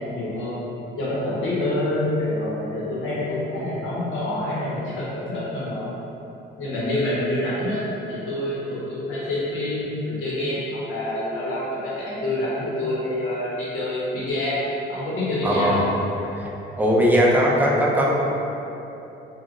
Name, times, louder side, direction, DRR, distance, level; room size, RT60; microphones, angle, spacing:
voice 1, 0.1-0.6 0.9-5.9 6.6-7.8 8.1-14.6 14.9-15.8, left 1 dB, 90° left, -8 dB, 1.0 m, -27 dB
voice 2, 15.4-15.8 16.3-16.5 16.8-18.2, equal, 10° right, -4 dB, 0.5 m, -19 dB
3.7 x 2.4 x 2.4 m, 3.0 s
cardioid pair, 90°, 20 cm